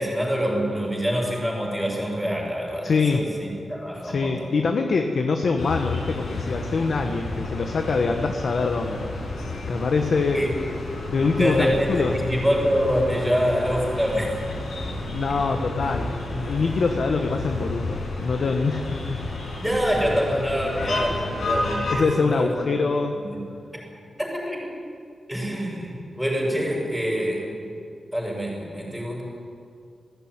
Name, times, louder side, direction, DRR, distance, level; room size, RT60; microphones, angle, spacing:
voice 1, 0.0-4.5 10.3-10.5 11.3-14.4 19.6-22.9 23.2-23.4 24.2-24.7 25.3-27.6 28.1-29.2, equal, ahead, -2 dB, 6.7 m, -25 dB
voice 2, 2.8-3.3 4.0-9.3 9.7-10.4 11.1-12.2 15.1-19.2 21.9-23.2, left 4 dB, 55° left, 4 dB, 1.3 m, -24 dB
sound 1, 5.6-22.0, left 2 dB, 85° left, 6.5 m, -31 dB
19.5 x 16.0 x 9.5 m, 2.3 s
wide cardioid pair, 160°, 0 cm